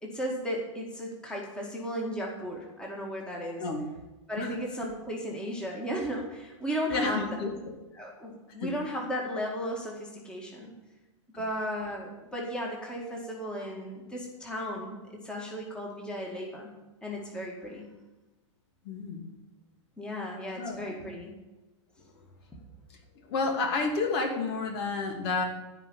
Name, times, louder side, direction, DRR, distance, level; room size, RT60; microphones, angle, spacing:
voice 1, 0.0-3.6 4.3-7.4 8.0-10.7 11.4-15.0 15.2-16.7 17.0-17.8 20.0-21.3, equal, 5° left, -2 dB, 2.0 m, -35 dB
voice 2, 6.9-7.5 8.6-8.7 11.3-11.4 18.8-19.2 20.6-21.0 22.1-22.2 23.3-25.4, left 3 dB, 55° left, 2 dB, 2.6 m, -30 dB
15.0 x 5.2 x 8.6 m, 1.1 s
supercardioid pair, 145°, 16 cm